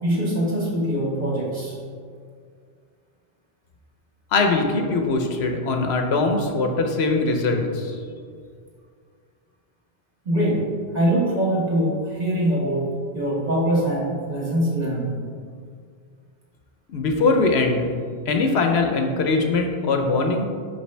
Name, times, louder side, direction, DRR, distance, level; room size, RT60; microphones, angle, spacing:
voice 1, 0.0-1.8 10.3-10.6 10.9-12.9 13.1-15.1, right 1 dB, 40° right, -6 dB, 1.7 m, -23 dB
voice 2, 4.3-8.0 16.9-17.9 18.3-20.4, left 3 dB, 85° left, 4 dB, 1.0 m, -21 dB
5.5 x 5.3 x 3.3 m, 2.1 s
omnidirectional pair, 1.1 m